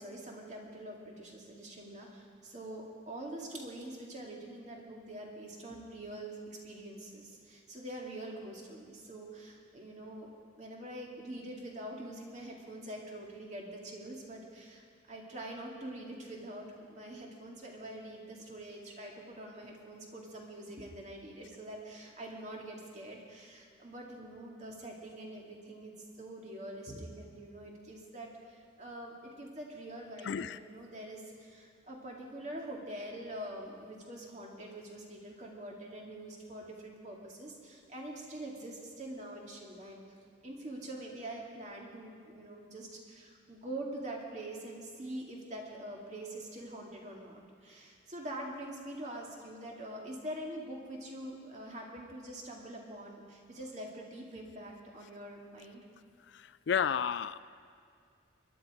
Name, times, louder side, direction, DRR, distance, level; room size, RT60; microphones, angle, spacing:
voice 1, 0.0-10.3 10.6-40.0 40.4-55.8, right 1 dB, 35° right, -1 dB, 2.3 m, -45 dB
voice 2, 30.3-30.6 56.3-57.4, left 7 dB, 65° left, 15 dB, 0.4 m, -32 dB
22.5 x 11.0 x 4.9 m, 2.3 s
head